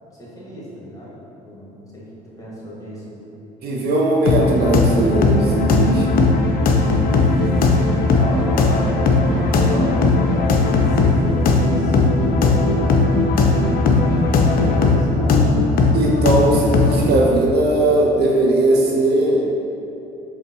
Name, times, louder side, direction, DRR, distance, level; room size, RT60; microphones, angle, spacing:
voice 1, 0.1-1.2 1.4-2.1 2.4-3.1 7.0-10.1 10.8-12.7 13.6-15.5, equal, 15° left, -6 dB, 1.2 m, -32 dB
voice 2, 3.6-6.1 15.9-19.5, right 2 dB, 50° right, -2 dB, 0.5 m, -18 dB
sound 1, 4.3-17.1, left 3 dB, 45° left, 0.4 m, -17 dB
5.0 x 2.1 x 2.7 m, 2.8 s
hypercardioid pair, 60°, 21 cm